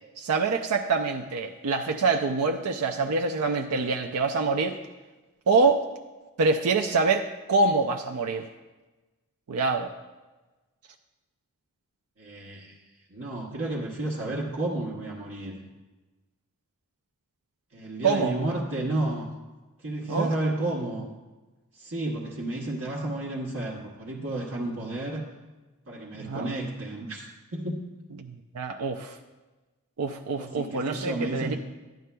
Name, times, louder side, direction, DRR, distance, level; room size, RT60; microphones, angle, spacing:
voice 1, 0.2-4.8 5.5-5.8 6.4-8.5 9.5-9.9 18.0-18.3 20.1-20.3 26.2-26.5 28.2-29.2 30.0-31.6, right 4 dB, 80° right, 4 dB, 0.5 m, -25 dB
voice 2, 12.2-12.8 13.1-15.6 17.7-19.3 19.8-21.1 21.7-25.2 25.9-27.8 30.4-31.6, right 2 dB, 60° right, -5 dB, 1.1 m, -32 dB
12.5 x 9.2 x 2.2 m, 1.2 s
head